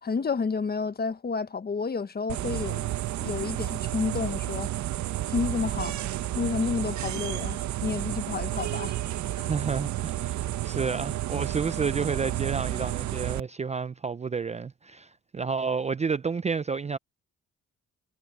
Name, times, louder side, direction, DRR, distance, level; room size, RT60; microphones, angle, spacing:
voice 1, 0.0-2.9 3.2-4.7 5.3-6.0 6.3-8.9 9.3-9.5, left 5 dB, 30° left, 1.3 m, -30 dB
sound 1, 2.3-13.4, right 13 dB, 70° right, 0.9 m, -31 dB
voice 2, 9.5-17.0, right 5 dB, 20° right, 0.5 m, -30 dB
cardioid pair, 90°, 30 cm